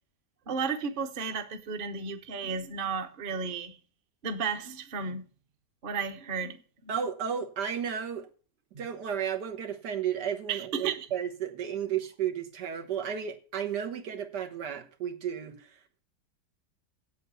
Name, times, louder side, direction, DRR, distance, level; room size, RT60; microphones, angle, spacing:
voice 1, 0.5-3.7 4.2-5.3 5.8-6.9 10.5-11.1, right 5 dB, 40° right, 0.9 m, -33 dB
voice 2, 6.9-8.3 8.8-15.8, right 8 dB, 90° right, 1.8 m, -33 dB
8.1 x 7.7 x 6.8 m
omnidirectional pair, 1.7 m